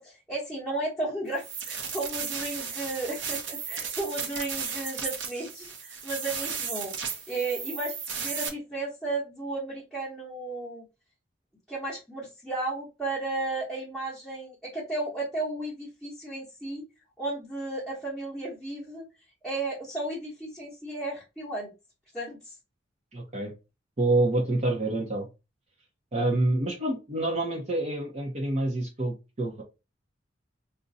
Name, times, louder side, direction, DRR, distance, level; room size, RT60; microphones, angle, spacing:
voice 1, 0.0-10.9 11.7-16.8 17.2-19.1 19.4-21.7 22.1-22.6, right 2 dB, ahead, -8 dB, 1.0 m, -34 dB
sound 1, 1.4-8.5, right 6 dB, 75° right, 0.8 m, -35 dB
voice 2, 23.1-23.5 24.0-25.3 26.1-29.6, right 2 dB, 35° right, -1 dB, 0.7 m, -27 dB
2.5 x 2.2 x 3.9 m, 0.27 s
head